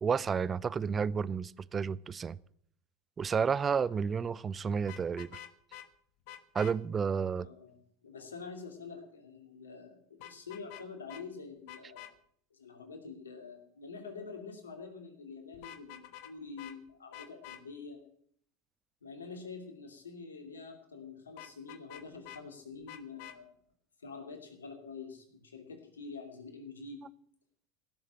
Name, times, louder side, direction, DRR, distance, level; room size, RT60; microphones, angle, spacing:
voice 1, 0.0-2.4 3.2-5.3 6.5-7.5, right 6 dB, 25° right, 0.6 m, -31 dB
Vehicle horn car horn honking, 4.8-5.9 6.3-6.7 10.2-10.8 11.1-11.2 11.7-12.1 15.5-16.3 16.6-16.8 17.1-17.6 21.4-22.4 22.9-23.4, left 12 dB, 60° left, 1.3 m, -48 dB
voice 2, 7.4-12.1 12.5-18.0 19.0-23.5 24.0-27.0, left 4 dB, 90° left, 2.7 m, -46 dB
16.0 x 7.3 x 8.6 m
hypercardioid pair, 85°, 0 cm